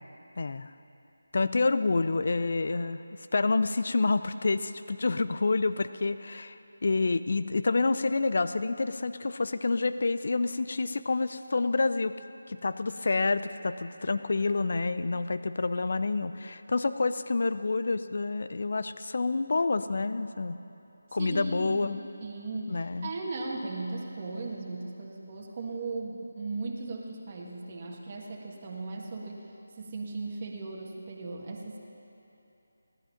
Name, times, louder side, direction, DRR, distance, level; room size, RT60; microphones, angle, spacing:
voice 1, 0.4-0.7 1.3-3.0 3.3-12.1 12.5-20.6 21.1-22.0 22.7-23.1, left 3 dB, 55° left, 12 dB, 0.6 m, -28 dB
voice 2, 21.2-21.9 22.2-29.5 29.8-31.8, right 3 dB, 35° right, -1 dB, 1.6 m, -37 dB
17.0 x 12.0 x 5.8 m, 3.0 s
figure-of-eight pair, 160°, 0 cm